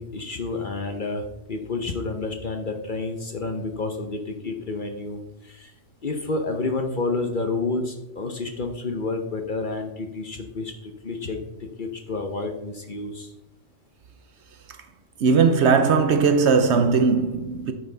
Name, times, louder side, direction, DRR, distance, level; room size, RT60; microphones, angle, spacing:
voice 1, 0.0-5.7 6.0-11.4 11.8-13.3, left 3 dB, 45° left, 0.8 m, -29 dB
voice 2, 15.2-17.7, right 5 dB, 60° right, 0.9 m, -19 dB
8.8 x 6.6 x 3.8 m
omnidirectional pair, 1.4 m